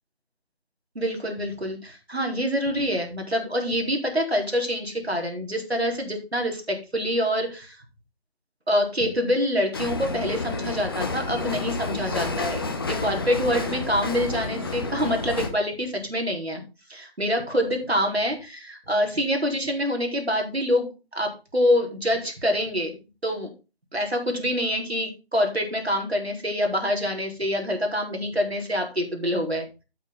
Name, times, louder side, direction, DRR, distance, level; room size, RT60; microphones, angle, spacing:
voice 1, 0.9-7.8 8.7-16.6 16.9-23.0 23.2-23.5 23.9-29.6, equal, 90° right, 2 dB, 4.3 m, -26 dB
sound 1, 9.7-15.5, left 3 dB, 25° left, 1.0 m, -30 dB
8.7 x 8.6 x 4.0 m, 0.30 s
figure-of-eight pair, 160°, 31 cm